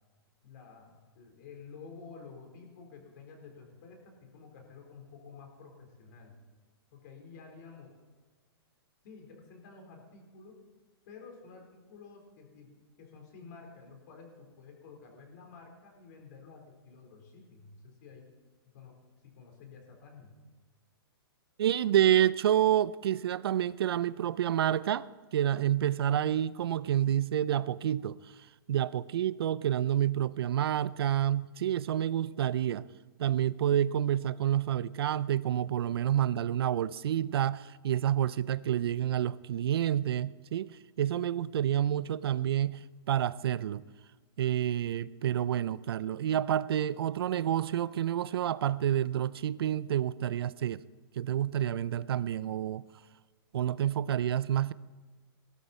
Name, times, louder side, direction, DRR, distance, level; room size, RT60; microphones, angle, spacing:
voice 1, 0.4-6.4 6.9-7.9 9.0-10.6 11.1-18.3 18.7-19.0 19.2-20.4, left 5 dB, 45° left, 4.0 m, -51 dB
voice 2, 21.6-28.2 28.7-32.9 33.2-40.7 41.0-42.8 43.1-43.8 44.4-50.8 51.2-52.8 53.5-54.7, right 11 dB, 70° right, 0.5 m, -28 dB
17.5 x 12.5 x 4.3 m
hypercardioid pair, 160°, 13 cm